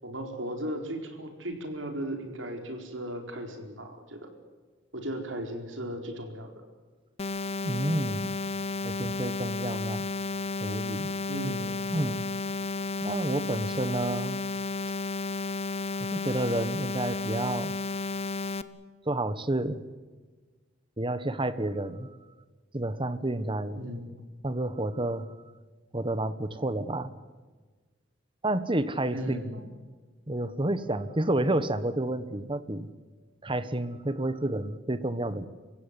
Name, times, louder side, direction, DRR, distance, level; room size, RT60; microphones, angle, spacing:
voice 1, 0.0-4.3 4.9-6.5 11.3-11.7 23.7-24.1 29.1-29.6, right 1 dB, 80° right, 4 dB, 4.5 m, -36 dB
sound 1, 7.2-18.6, left 3 dB, 35° left, 0.9 m, -32 dB
voice 2, 7.6-8.4 8.8-10.1 10.6-11.1 11.9-12.2 13.0-14.4 16.1-17.7 19.1-19.8 21.0-22.1 22.7-23.8 24.4-25.3 25.9-27.1 28.4-29.4 30.3-32.9 33.4-35.5, right 1 dB, 25° right, 13 dB, 1.3 m, -30 dB
27.5 x 16.0 x 9.8 m, 1.4 s
head